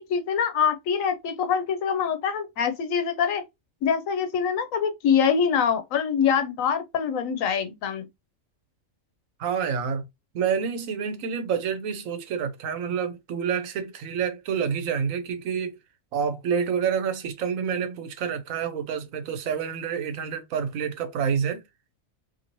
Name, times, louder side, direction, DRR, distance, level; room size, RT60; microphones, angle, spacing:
voice 1, 0.0-3.4 3.8-8.1, left 7 dB, 85° left, 1.0 m, -24 dB
voice 2, 9.4-10.0 10.3-15.7 16.1-21.6, right 7 dB, 85° right, 1.1 m, -28 dB
2.9 x 2.7 x 2.6 m
omnidirectional pair, 1.4 m